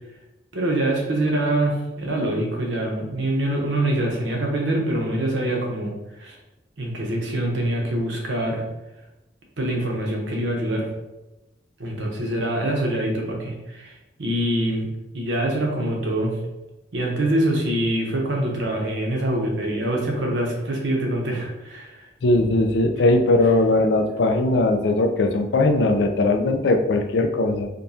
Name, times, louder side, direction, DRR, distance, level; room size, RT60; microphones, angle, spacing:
voice 1, 0.5-6.4 6.8-8.6 9.6-10.9 11.8-16.4 16.9-22.1 23.4-23.5, right 1 dB, 75° right, 0 dB, 0.9 m, -25 dB
voice 2, 22.2-27.7, left 2 dB, 65° left, 5 dB, 0.4 m, -19 dB
5.1 x 2.2 x 2.7 m, 0.98 s
head